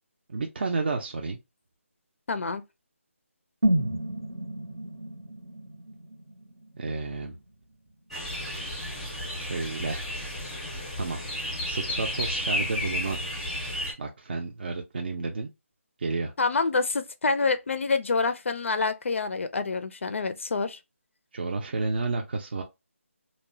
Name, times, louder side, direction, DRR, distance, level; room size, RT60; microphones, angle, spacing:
voice 1, 0.3-1.4 6.8-7.4 9.4-10.0 11.0-13.2 14.0-15.5 16.0-16.3 21.3-22.6, right 3 dB, 45° right, 0.4 m, -31 dB
voice 2, 2.3-2.6 16.4-20.8, left 4 dB, 65° left, 0.4 m, -27 dB
sound 1, 3.6-7.6 7.9-8.0, right 1 dB, 85° right, 0.8 m, -31 dB
sound 2, 8.1-13.9, left 1 dB, ahead, 0.5 m, -32 dB
2.9 x 2.1 x 2.5 m
figure-of-eight pair, 165°, 7 cm